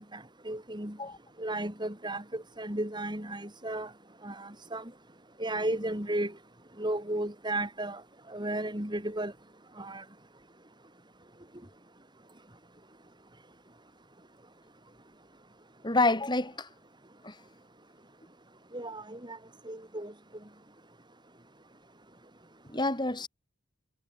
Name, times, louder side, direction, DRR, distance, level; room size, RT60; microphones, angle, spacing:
voice 1, 0.1-1.0 1.4-3.9 4.2-4.8 5.4-6.3 6.8-8.0 8.3-9.3 9.8-10.0 18.7-19.4 19.7-20.1, right 1 dB, 20° right, 4.0 m, -34 dB
voice 2, 15.8-16.7 17.2-17.4 22.7-23.3, left 2 dB, 20° left, 6.1 m, -28 dB
head